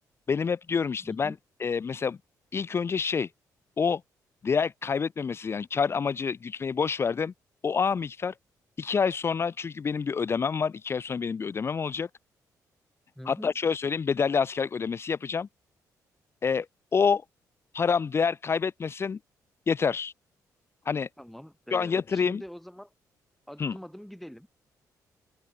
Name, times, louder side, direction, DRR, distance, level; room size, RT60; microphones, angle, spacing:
voice 1, 0.3-1.3 1.6-2.2 2.5-3.3 3.8-4.0 4.4-7.3 7.6-8.3 8.8-12.1 13.2-15.5 16.4-16.7 16.9-17.2 17.7-19.2 19.7-20.1 20.9-21.1 21.7-22.4 23.6-23.7, left 6 dB, 35° left, 0.6 m, -27 dB
voice 2, 1.0-1.4 13.1-13.5 21.2-22.9 23.5-24.5, equal, ahead, 5.1 m, -44 dB
cardioid pair, 90°, 7 cm